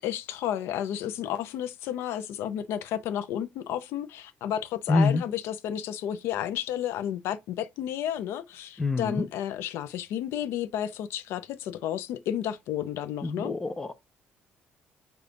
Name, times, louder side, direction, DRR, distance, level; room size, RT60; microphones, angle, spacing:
voice 1, 0.0-13.6, left 10 dB, 80° left, 0.4 m, -32 dB
voice 2, 4.9-5.2 8.8-9.2 13.2-13.9, left 3 dB, 10° left, 0.4 m, -25 dB
5.0 x 2.3 x 3.7 m
cardioid pair, 175°, 4 cm